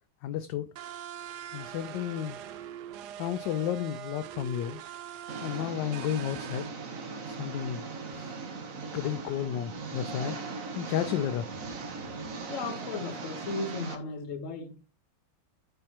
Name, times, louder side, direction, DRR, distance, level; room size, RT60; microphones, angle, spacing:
voice 1, 0.2-0.7 1.5-2.4 3.2-4.8 5.4-6.7 7.2-8.4 8.9-10.4 10.7-11.5, left 10 dB, 75° left, 1.0 m, -32 dB
sound 1, 0.8-6.7, right 10 dB, 75° right, 1.0 m, -42 dB
Engine, 5.3-14.0, right 4 dB, 45° right, 1.4 m, -39 dB
voice 2, 12.5-14.8, left 3 dB, 45° left, 1.2 m, -36 dB
13.0 x 4.4 x 2.9 m
omnidirectional pair, 2.3 m